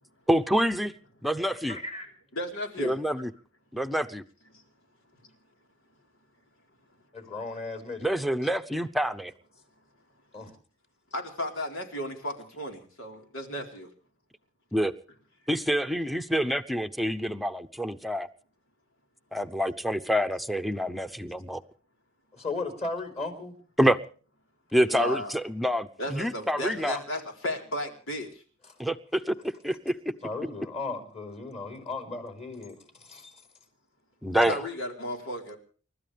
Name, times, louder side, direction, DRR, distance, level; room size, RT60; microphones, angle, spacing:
voice 1, 0.3-0.9 1.2-1.8 2.8-3.3 3.7-4.2 8.0-9.3 14.7-14.9 15.5-18.3 19.3-21.6 23.8-24.0 24.7-27.0 28.8-29.4 29.6-29.9 34.2-34.7, equal, ahead, 9 dB, 0.8 m, -27 dB
voice 2, 1.7-2.1 7.1-8.1 10.3-10.5 22.3-23.6 28.7-28.8 30.2-33.3, left 3 dB, 35° left, 6 dB, 4.6 m, -36 dB
voice 3, 2.3-3.0 4.5-4.6 11.1-13.9 24.9-25.3 26.0-28.4 34.5-35.6, left 1 dB, 90° left, 2 dB, 4.3 m, -34 dB
30.0 x 13.5 x 3.5 m, 0.41 s
head